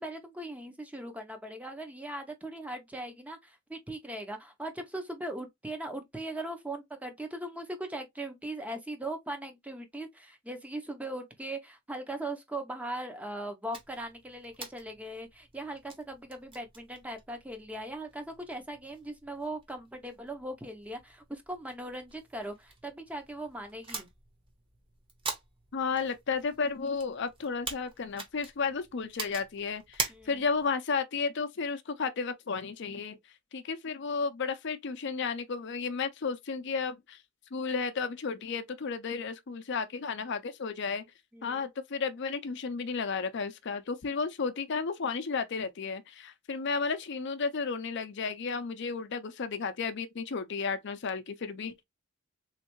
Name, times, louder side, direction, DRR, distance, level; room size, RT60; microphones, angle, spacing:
voice 1, 0.0-24.1 30.1-30.4 41.3-41.7, right 1 dB, 5° right, 0.7 m, -39 dB
sound 1, 13.7-30.7, right 3 dB, 25° right, 1.0 m, -44 dB
voice 2, 25.7-33.2 33.5-37.2 37.5-41.0 41.4-51.8, left 5 dB, 60° left, 0.5 m, -33 dB
3.6 x 3.2 x 3.0 m
head